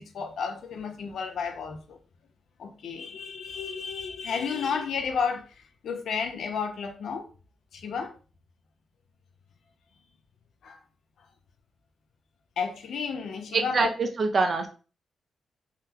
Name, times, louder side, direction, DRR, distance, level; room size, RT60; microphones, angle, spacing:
voice 1, 0.0-2.0 2.6-7.3 7.7-8.2 10.6-10.8 12.6-13.9, left 6 dB, 75° left, 0.5 m, -32 dB
voice 2, 13.5-14.7, right 3 dB, 50° right, 0.6 m, -24 dB
3.6 x 2.2 x 2.8 m
cardioid pair, 90°, 0 cm